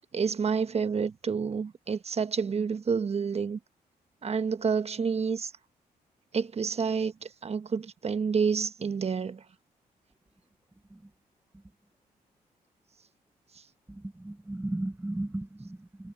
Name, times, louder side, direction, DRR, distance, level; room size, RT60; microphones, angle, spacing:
voice 1, 0.1-3.6 4.2-5.5 6.3-9.4, right 5 dB, 40° right, 1.1 m, -29 dB
voice 2, 13.9-16.1, right 1 dB, 10° right, 0.9 m, -35 dB
cardioid pair, 80°, 16 cm